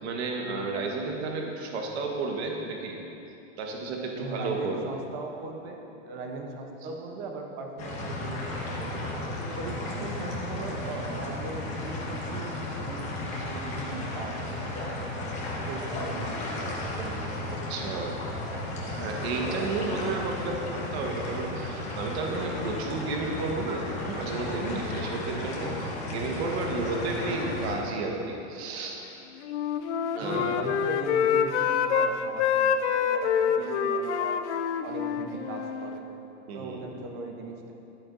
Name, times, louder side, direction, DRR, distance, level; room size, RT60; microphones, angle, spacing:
voice 1, 0.0-3.0 3.6-4.9 17.5-18.2 18.9-29.0 30.1-30.7 36.5-37.0, right 3 dB, 60° right, 1 dB, 1.2 m, -32 dB
voice 2, 4.2-9.1 9.6-15.1 15.6-17.3 30.2-34.4 34.8-36.1 36.5-37.7, right 3 dB, 30° right, 2 dB, 0.7 m, -39 dB
sound 1, 7.8-27.7, left 1 dB, 20° left, 1.0 m, -34 dB
Wind instrument woodwind instrument, 29.4-32.1 32.4-36.0, left 7 dB, 70° left, 0.6 m, -26 dB
11.5 x 8.7 x 2.5 m, 2.9 s
supercardioid pair, 170°, 36 cm